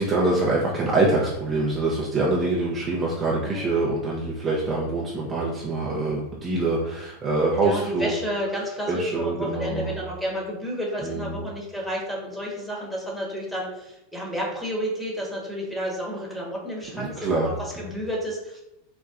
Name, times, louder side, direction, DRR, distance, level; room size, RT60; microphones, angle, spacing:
voice 1, 0.0-8.1 8.9-10.0 11.0-11.4 16.9-17.9, right 2 dB, 25° right, -4 dB, 0.6 m, -25 dB
voice 2, 7.6-18.6, equal, 5° left, -3 dB, 1.2 m, -31 dB
4.0 x 2.2 x 2.5 m, 0.85 s
hypercardioid pair, 105°, 0 cm